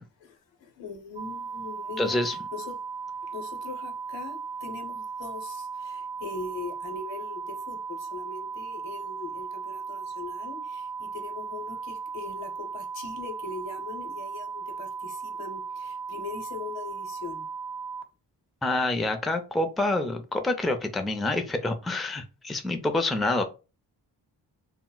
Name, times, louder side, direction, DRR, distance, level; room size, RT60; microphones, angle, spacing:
voice 1, 0.2-2.8 3.2-17.5, left 4 dB, 80° left, 0.8 m, -41 dB
sound 1, 1.2-18.0, right 5 dB, 85° right, 0.5 m, -37 dB
voice 2, 2.0-2.4 18.6-23.4, left 2 dB, ahead, 0.4 m, -27 dB
2.1 x 2.1 x 3.8 m
cardioid pair, 55°, 44 cm